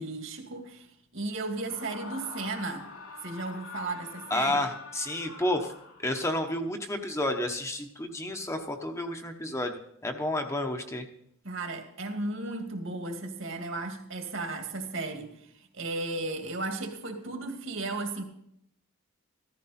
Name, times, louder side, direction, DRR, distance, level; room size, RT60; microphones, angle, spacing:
voice 1, 0.0-2.9 3.2-4.6 11.4-18.2, right 2 dB, 60° right, 4 dB, 2.3 m, -35 dB
Screaming, 1.5-6.3, left 4 dB, 75° left, 4.1 m, -45 dB
voice 2, 4.3-5.7 6.0-11.1, left 1 dB, 15° left, 4 dB, 1.0 m, -31 dB
15.0 x 14.0 x 4.3 m, 0.73 s
head